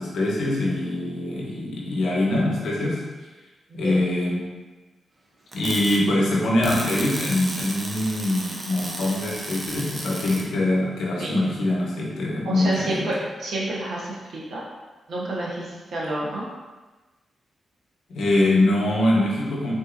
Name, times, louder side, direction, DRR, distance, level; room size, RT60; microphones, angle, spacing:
voice 1, 0.0-3.0 3.7-4.4 5.5-13.1 18.1-19.7, left 1 dB, 80° left, -3 dB, 0.8 m, -23 dB
voice 2, 3.7-4.1 11.2-11.4 12.4-14.6 15.1-16.5, right 1 dB, 70° right, -4 dB, 0.9 m, -29 dB
sound 1, 5.5-6.0 6.6-10.4, right 1 dB, 45° right, 0.6 m, -33 dB
3.7 x 2.6 x 2.5 m, 1.2 s
cardioid pair, 60°, 0 cm